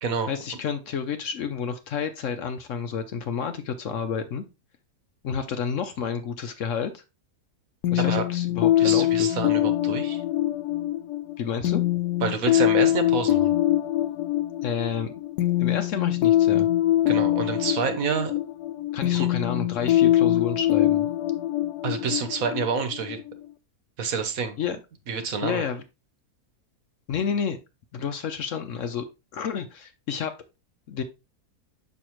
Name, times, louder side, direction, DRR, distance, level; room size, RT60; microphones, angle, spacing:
voice 1, 0.3-4.4 5.2-7.0 7.9-9.4 11.4-11.8 14.6-15.1 15.6-16.7 18.9-21.1 24.6-24.8 25.4-25.8 27.1-27.6 27.9-29.1 29.3-30.3 30.9-31.0, left 7 dB, 60° left, 8 dB, 0.9 m, -30 dB
sound 1, 7.8-23.4, left 13 dB, 85° left, 1.2 m, -23 dB
voice 2, 8.8-10.2 12.2-13.5 17.1-18.3 19.1-19.3 21.8-23.2 24.0-24.6 25.1-25.7, right 5 dB, 65° right, 8 dB, 1.4 m, -28 dB
6.3 x 5.6 x 3.0 m, 0.26 s
omnidirectional pair, 1.7 m